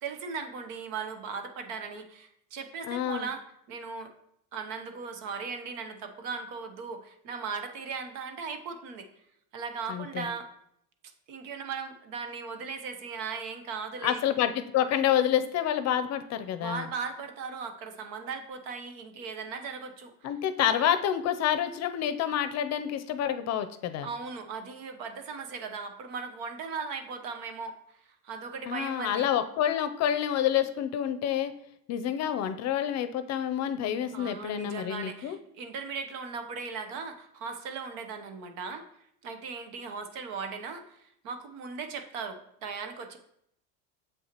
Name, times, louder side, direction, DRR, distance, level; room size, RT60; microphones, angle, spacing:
voice 1, 0.0-3.4 3.7-4.1 4.5-9.1 9.5-10.5 11.3-14.2 16.6-20.3 24.0-27.7 28.2-29.3 34.1-38.9 39.2-43.2, right 5 dB, 70° right, 6 dB, 1.0 m, -38 dB
voice 2, 2.9-3.3 9.9-10.3 14.0-16.9 20.2-24.1 28.7-31.5 31.9-35.4, left 10 dB, 50° left, 11 dB, 0.6 m, -28 dB
7.3 x 5.5 x 2.9 m, 0.74 s
supercardioid pair, 105°, 35 cm